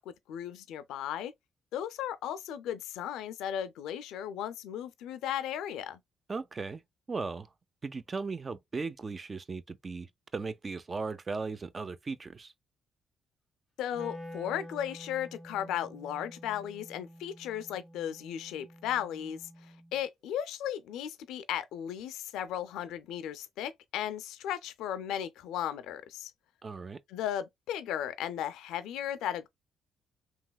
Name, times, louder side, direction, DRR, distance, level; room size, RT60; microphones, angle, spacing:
voice 1, 0.0-1.3 1.7-6.0 13.8-26.3 27.1-29.5, left 10 dB, 90° left, 0.4 m, -36 dB
voice 2, 6.3-6.8 7.1-7.5 7.8-12.5 26.6-27.0, right 4 dB, 35° right, 0.4 m, -37 dB
Wind instrument woodwind instrument, 13.9-20.0, equal, 15° right, 1.4 m, -49 dB
3.1 x 2.8 x 2.2 m
cardioid pair, 90°, 0 cm